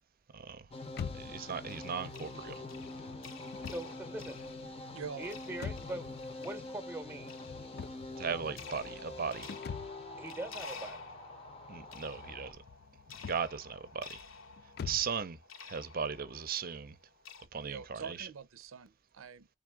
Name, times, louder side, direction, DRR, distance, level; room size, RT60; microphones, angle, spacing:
voice 1, 0.3-0.7 1.1-2.6 8.2-9.6 11.7-12.6 13.3-14.2 14.8-15.4 15.6-17.0 17.5-18.3, right 6 dB, 45° right, 0.7 m, -37 dB
sound 1, 0.7-12.5, left 2 dB, 30° left, 0.8 m, -46 dB
sound 2, 0.9-15.2, left 6 dB, 50° left, 0.3 m, -47 dB
sound 3, 1.7-17.5, left 4 dB, 80° left, 1.1 m, -51 dB
voice 2, 3.6-4.4 5.2-6.1 6.4-7.3 10.2-11.1, right 2 dB, 10° right, 0.9 m, -42 dB
voice 3, 4.9-5.3 17.6-19.5, right 6 dB, 85° right, 0.6 m, -45 dB
3.6 x 3.5 x 3.4 m
head